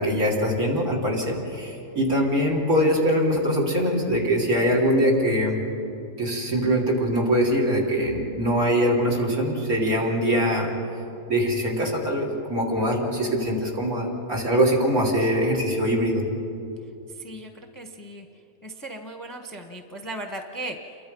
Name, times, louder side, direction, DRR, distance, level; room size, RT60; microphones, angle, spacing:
voice 1, 0.0-5.6 6.2-10.7 11.3-16.3, equal, 60° right, -1 dB, 4.1 m, -23 dB
voice 2, 17.2-18.3 18.6-21.0, right 1 dB, 15° left, 4 dB, 1.0 m, -37 dB
29.0 x 22.5 x 5.4 m, 2.8 s
omnidirectional pair, 1.7 m